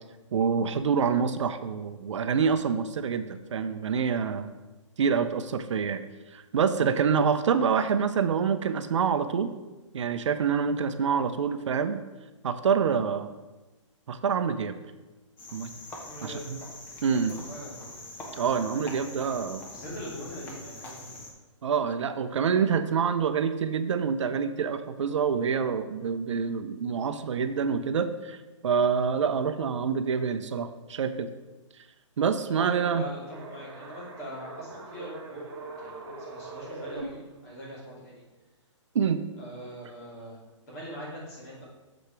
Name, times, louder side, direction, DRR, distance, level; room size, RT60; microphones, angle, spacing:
voice 1, 0.3-4.5 5.0-6.0 6.3-9.5 9.9-12.0 12.4-13.3 14.1-14.8 15.5-15.7 16.2-16.6 17.0-17.3 18.4-19.6 21.6-28.4 28.6-31.3 32.2-33.0 38.9-39.2, right 6 dB, 65° right, 10 dB, 0.5 m, -26 dB
Cricket, 15.4-21.3, left 2 dB, 10° left, 0.6 m, -43 dB
voice 2, 16.0-16.5 17.1-18.0 19.7-21.3 32.4-38.2 39.4-41.7, equal, 30° left, -5 dB, 2.5 m, -42 dB
sound 1, 33.2-37.0, right 3 dB, 45° right, 1.4 m, -42 dB
7.0 x 5.0 x 4.5 m, 1.2 s
hypercardioid pair, 165°, 16 cm